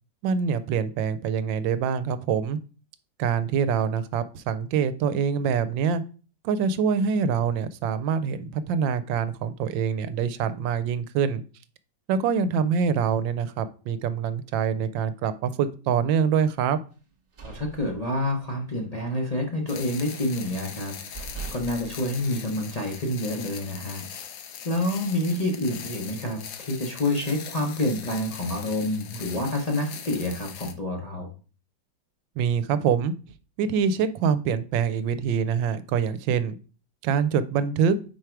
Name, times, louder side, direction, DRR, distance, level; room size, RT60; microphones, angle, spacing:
voice 1, 0.2-2.6 3.2-6.0 6.4-11.4 12.1-16.8 32.4-33.1 33.6-36.6 37.0-38.0, right 7 dB, 85° right, 13 dB, 1.3 m, -25 dB
sound 1, 17.0-18.6 18.9-19.2 19.5-20.3 20.8-20.9 21.1-23.0, right 5 dB, 45° right, 1.3 m, -41 dB
voice 2, 17.4-24.1 24.6-31.3, left 1 dB, 35° left, 0 dB, 0.6 m, -28 dB
sound 2, 19.7-30.7, left 8 dB, 60° left, 1.0 m, -41 dB
4.8 x 4.6 x 4.5 m, 0.37 s
omnidirectional pair, 2.0 m